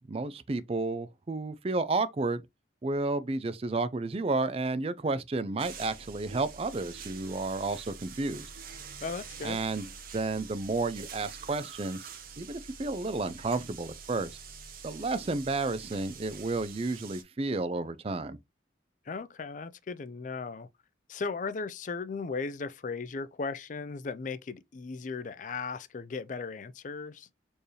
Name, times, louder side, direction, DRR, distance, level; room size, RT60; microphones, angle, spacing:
voice 1, 0.1-2.4 2.8-8.5 9.4-9.9 10.1-12.0 12.4-14.4 14.8-18.4, right 3 dB, 30° right, 0.4 m, -31 dB
sound 1, 5.6-17.2, right 5 dB, 50° right, 0.8 m, -46 dB
voice 2, 9.0-9.6 19.1-20.7 21.1-27.3, left 4 dB, 40° left, 0.4 m, -37 dB
4.4 x 3.3 x 2.8 m
head